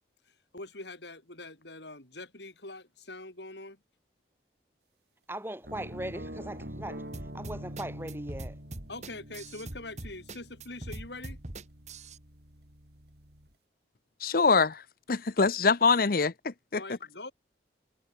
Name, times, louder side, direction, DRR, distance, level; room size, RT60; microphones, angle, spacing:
voice 1, 0.5-3.8 8.9-11.4 16.7-17.3, left 2 dB, 65° left, 6.5 m, -43 dB
voice 2, 5.3-8.6, right 1 dB, 10° right, 5.7 m, -39 dB
sound 1, 5.6-13.5, equal, 60° right, 6.5 m, -45 dB
sound 2, 7.1-12.2, right 2 dB, 40° right, 2.0 m, -42 dB
voice 3, 14.2-14.8 15.1-16.8, left 4 dB, 50° left, 0.7 m, -24 dB
head